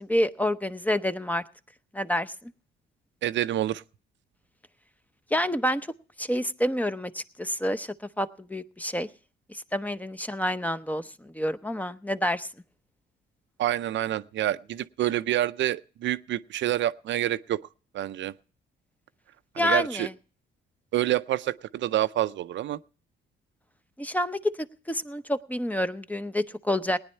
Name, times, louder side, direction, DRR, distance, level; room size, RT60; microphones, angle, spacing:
voice 1, 0.0-1.4 1.9-2.3 5.3-5.8 6.2-9.1 9.5-11.0 11.3-12.5 19.6-20.1 24.0-27.0, left 1 dB, 10° left, 0.7 m, -28 dB
voice 2, 3.2-3.8 13.6-17.6 17.9-18.3 19.6-20.1 20.9-22.8, right 13 dB, 70° right, 0.5 m, -27 dB
18.5 x 9.7 x 4.4 m
cardioid pair, 90°, 20 cm